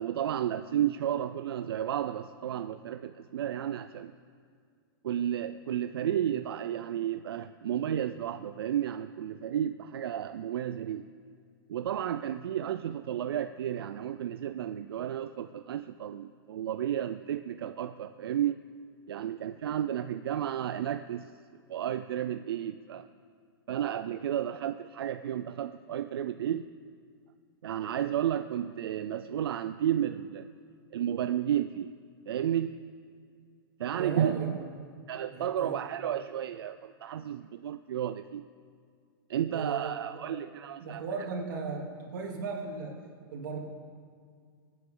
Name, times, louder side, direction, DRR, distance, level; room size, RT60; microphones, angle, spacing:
voice 1, 0.0-4.1 5.0-11.0 11.7-18.6 19.1-21.3 21.7-23.1 23.7-26.6 27.6-30.5 30.9-31.9 32.3-32.8 33.8-34.6 35.1-38.4 39.3-41.0, right 10 dB, 90° right, 10 dB, 0.5 m, -32 dB
voice 2, 34.0-34.7 35.3-35.9 39.5-39.9 40.3-40.4 40.8-42.9 43.3-43.6, right 4 dB, 55° right, -2 dB, 3.1 m, -36 dB
25.5 x 9.3 x 3.8 m, 2.1 s
supercardioid pair, 175°, 12 cm